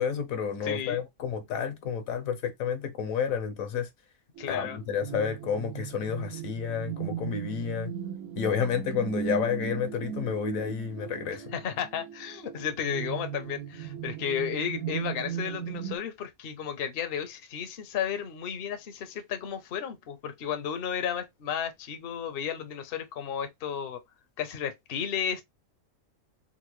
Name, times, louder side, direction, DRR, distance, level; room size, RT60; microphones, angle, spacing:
voice 1, 0.0-3.9 4.5-7.9 8.4-11.4, left 7 dB, 75° left, 1.1 m, -30 dB
voice 2, 0.6-1.0 4.4-4.8 11.5-24.0 24.4-25.4, left 8 dB, 55° left, 0.7 m, -33 dB
sound 1, 4.4-16.0, right 9 dB, 85° right, 1.1 m, -37 dB
3.7 x 2.1 x 3.0 m
omnidirectional pair, 1.5 m